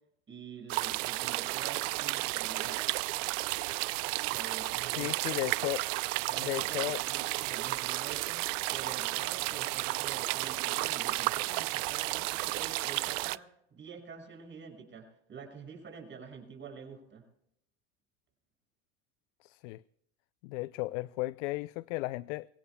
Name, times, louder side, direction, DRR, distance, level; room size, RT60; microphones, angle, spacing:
voice 1, 0.3-2.8 4.3-5.3 6.3-17.2, right 5 dB, 30° right, 5.8 m, -47 dB
sound 1, 0.7-13.4, right 22 dB, 80° right, 0.5 m, -33 dB
voice 2, 4.9-5.9 6.4-7.0 19.4-19.8 20.4-22.5, left 20 dB, 70° left, 0.5 m, -35 dB
24.5 x 16.5 x 2.2 m
supercardioid pair, 105°, 38 cm